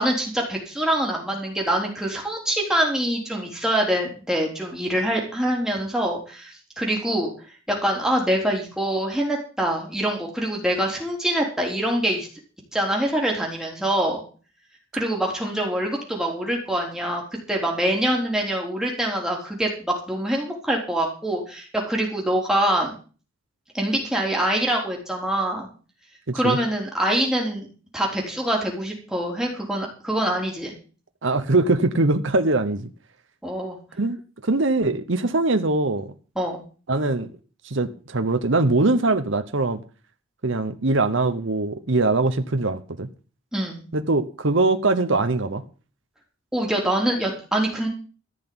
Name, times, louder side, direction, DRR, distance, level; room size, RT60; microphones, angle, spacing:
voice 1, 0.0-7.3 7.7-12.3 12.7-14.2 14.9-17.2 17.5-22.9 23.7-25.7 26.3-27.7 27.9-30.7 33.4-33.8 36.4-36.6 43.5-43.8 46.5-47.9, right 1 dB, 5° right, 3.8 m, -24 dB
voice 2, 26.3-26.6 31.2-32.9 34.0-34.2 34.4-36.1 36.9-37.3 37.6-39.8 40.4-43.1 43.9-45.6, right 2 dB, 60° right, 1.0 m, -22 dB
14.5 x 6.1 x 8.8 m
head